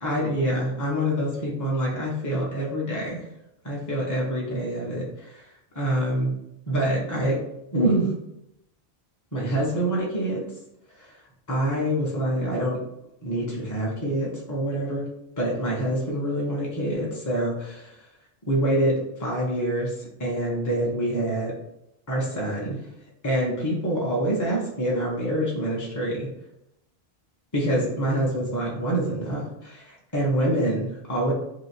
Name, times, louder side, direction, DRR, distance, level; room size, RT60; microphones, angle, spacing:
voice 1, 0.0-3.2 3.6-5.4 5.7-6.3 6.7-7.4 7.7-8.1 9.3-10.4 11.0-11.1 11.5-12.8 13.2-15.1 15.4-18.0 18.5-19.9 20.2-21.5 22.1-22.8 23.2-26.3 27.5-31.3, right 1 dB, 20° left, -4 dB, 0.8 m, -26 dB
3.1 x 2.9 x 4.3 m, 0.82 s
omnidirectional pair, 1.1 m